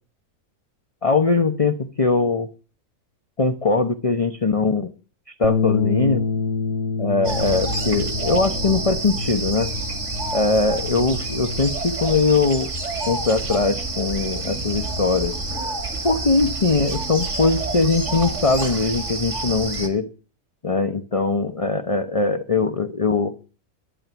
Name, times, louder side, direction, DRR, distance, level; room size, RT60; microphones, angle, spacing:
voice 1, 1.0-2.5 3.4-4.9 5.4-6.2 7.0-9.7 10.3-12.7 13.1-15.4 16.0-20.1 20.6-23.3, left 3 dB, 30° left, 8 dB, 0.8 m, -21 dB
sound 1, 5.4-11.7, left 5 dB, 80° left, 1.6 m, -27 dB
sound 2, 7.2-19.9, right 3 dB, 50° right, 2.6 m, -28 dB
11.5 x 11.0 x 6.9 m, 0.36 s
omnidirectional pair, 1.6 m